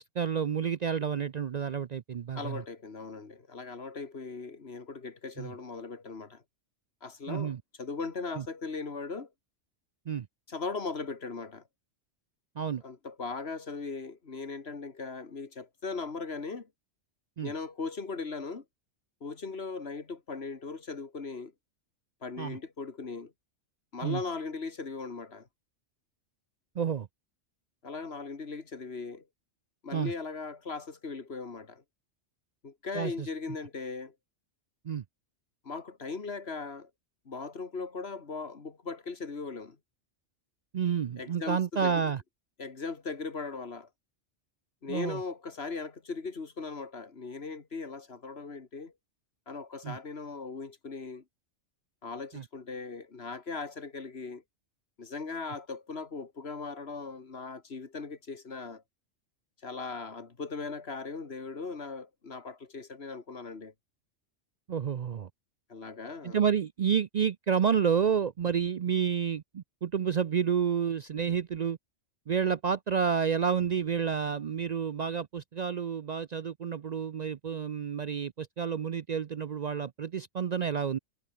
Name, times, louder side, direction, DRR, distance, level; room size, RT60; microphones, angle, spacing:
voice 1, 0.0-2.6 5.4-5.5 7.3-7.6 8.4-8.5 10.1-10.3 12.6-12.8 17.4-17.5 22.4-22.6 24.0-24.2 26.8-27.1 29.9-30.1 32.9-33.3 34.9-35.0 40.7-42.2 44.9-45.2 49.8-50.0 52.3-52.4 64.7-65.3 66.2-71.8 72.3-81.0, right 7 dB, 55° right, 0.4 m, -30 dB
voice 2, 2.3-6.4 7.0-9.3 10.5-11.6 12.8-16.7 17.4-18.6 19.2-21.5 22.2-23.3 23.9-25.5 27.8-29.3 29.8-31.8 32.6-34.1 35.6-36.9 37.3-39.8 41.2-42.1 42.6-43.9 44.8-48.9 49.5-51.2 52.0-54.4 55.0-58.8 59.6-63.7 65.7-66.4, left 4 dB, 55° left, 2.1 m, -39 dB
omnidirectional pair, 1.2 m